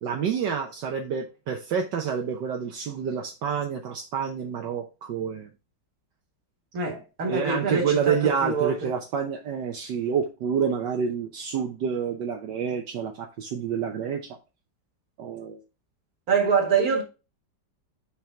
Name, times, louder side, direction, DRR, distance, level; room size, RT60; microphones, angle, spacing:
voice 1, 0.0-5.5 7.3-14.2 15.2-15.6, right 7 dB, 75° right, 1.5 m, -28 dB
voice 2, 6.7-8.8 16.3-17.0, right 5 dB, 55° right, 2.1 m, -25 dB
5.9 x 5.0 x 4.4 m
omnidirectional pair, 1.9 m